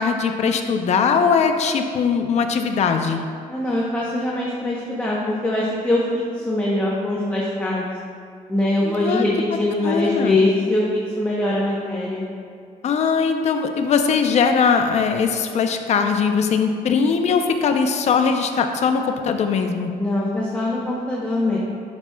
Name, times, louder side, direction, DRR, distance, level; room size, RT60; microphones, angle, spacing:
voice 1, 0.0-3.3 8.8-9.2 9.8-10.4 12.8-19.9, left 5 dB, 50° left, 5 dB, 0.6 m, -20 dB
voice 2, 3.5-7.9 8.5-12.2 20.0-21.6, left 1 dB, 10° left, -6 dB, 0.8 m, -22 dB
11.5 x 6.1 x 2.3 m, 2.2 s
cardioid pair, 150°, 15 cm